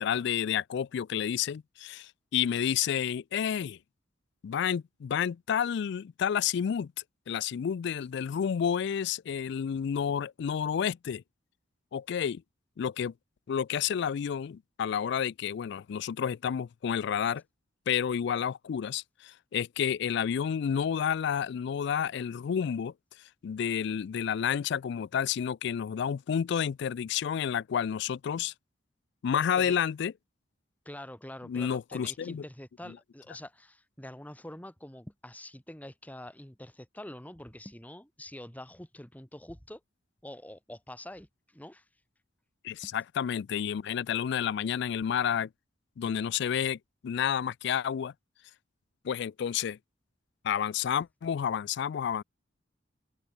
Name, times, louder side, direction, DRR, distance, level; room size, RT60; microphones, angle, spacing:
voice 1, 0.0-3.8 4.4-6.9 7.3-11.2 11.9-12.4 12.8-13.1 13.5-17.4 17.9-22.9 23.4-28.5 29.2-30.1 31.5-32.4 32.9-33.0 42.6-45.5 46.0-48.1 49.0-49.8 50.4-52.2, left 8 dB, 60° left, 0.3 m, -30 dB
voice 2, 30.9-39.8 40.2-41.8 42.8-42.9, left 1 dB, 10° left, 2.1 m, -45 dB
open air
head